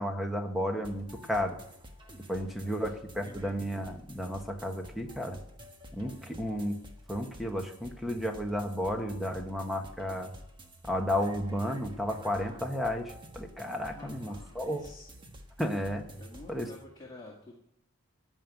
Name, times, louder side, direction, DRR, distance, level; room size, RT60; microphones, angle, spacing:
voice 1, 0.0-1.6 2.3-5.4 5.9-6.8 7.1-10.3 10.9-14.9 15.6-16.1 16.5-16.7, equal, ahead, 3 dB, 1.5 m, -33 dB
sound 1, 0.8-16.8, equal, 25° right, 1.3 m, -49 dB
voice 2, 2.4-3.0 13.8-15.1 16.2-17.6, left 2 dB, 20° left, -3 dB, 2.1 m, -50 dB
15.5 x 5.6 x 9.4 m, 0.75 s
head